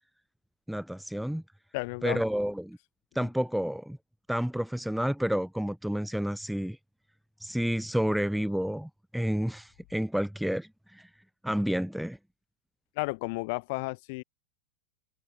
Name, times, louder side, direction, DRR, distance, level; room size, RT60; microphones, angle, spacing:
voice 1, 0.7-1.4 2.0-2.8 3.1-4.0 4.3-6.8 7.4-11.1 11.4-12.2, equal, ahead, 0.4 m, -30 dB
voice 2, 1.7-2.2 3.2-3.3 12.9-14.2, left 27 dB, 45° left, 1.3 m, -33 dB
figure-of-eight pair, 90°, 0 cm